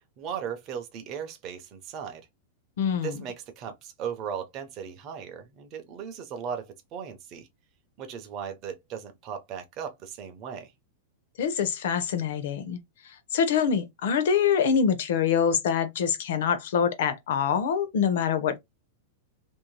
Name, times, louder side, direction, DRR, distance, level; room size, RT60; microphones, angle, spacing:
voice 1, 0.2-2.3 3.0-7.5 8.0-10.7, right 7 dB, 25° right, 0.5 m, -37 dB
voice 2, 2.8-3.2 11.4-12.8 13.3-18.6, left 7 dB, 60° left, 0.6 m, -25 dB
2.6 x 2.0 x 3.0 m
supercardioid pair, 175°, 0 cm